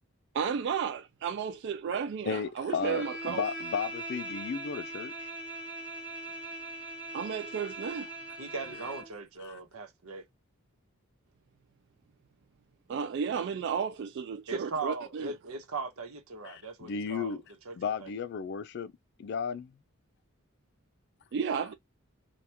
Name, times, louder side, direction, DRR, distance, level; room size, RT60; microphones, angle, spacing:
voice 1, 0.3-3.5 7.1-8.1 12.9-15.3 21.3-21.7, right 6 dB, 55° right, 0.3 m, -33 dB
voice 2, 2.2-5.3 9.4-9.6 16.4-17.4 17.7-18.9 19.2-19.8, left 6 dB, 55° left, 0.3 m, -34 dB
Bowed string instrument, 2.8-9.2, right 1 dB, 5° right, 0.9 m, -40 dB
voice 3, 8.4-10.2 14.5-17.4 17.6-18.1, right 3 dB, 85° right, 1.0 m, -39 dB
2.9 x 2.3 x 3.4 m
head